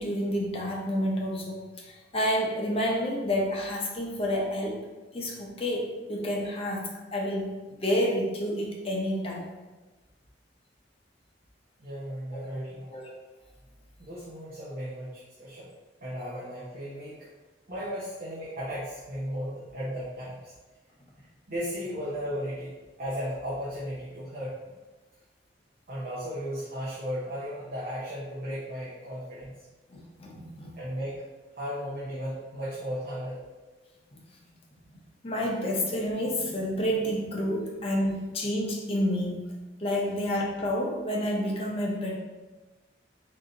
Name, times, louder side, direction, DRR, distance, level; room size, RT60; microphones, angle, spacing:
voice 1, 0.0-4.8 5.1-7.5 7.8-9.5 12.3-13.1 29.9-30.7 34.1-34.2 35.2-39.5 39.8-42.2, equal, 30° left, -2 dB, 0.8 m, -29 dB
voice 2, 11.8-12.9 14.0-15.7 16.0-17.3 17.7-20.5 21.5-22.7 23.0-24.6 25.9-29.5 30.8-31.2 31.6-33.4, equal, 55° right, -8 dB, 0.8 m, -35 dB
3.7 x 2.8 x 3.8 m, 1.2 s
head